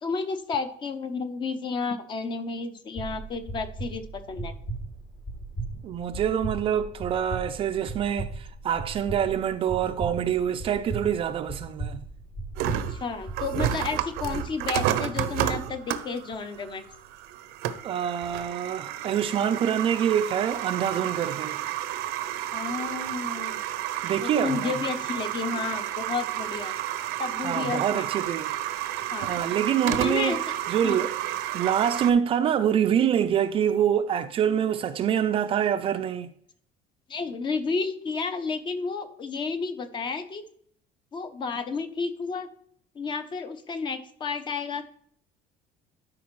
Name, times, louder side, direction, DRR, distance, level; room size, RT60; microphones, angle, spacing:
voice 1, 0.0-4.5 12.9-16.8 22.5-23.6 24.2-26.7 27.2-28.1 29.1-29.3 29.8-30.4 30.8-31.0 37.1-40.4 41.1-42.5 42.9-44.8, left 4 dB, 30° left, 0.7 m, -31 dB
sound 1, 3.0-14.4, right 2 dB, 50° left, 2.5 m, -37 dB
voice 2, 5.8-12.0 17.8-21.6 24.0-24.8 27.4-28.5 29.2-31.1 31.5-36.3, right 9 dB, 35° right, 0.4 m, -26 dB
sound 2, 12.6-32.1, right 12 dB, 80° right, 0.6 m, -31 dB
12.0 x 5.1 x 3.1 m
cardioid pair, 165°, 16 cm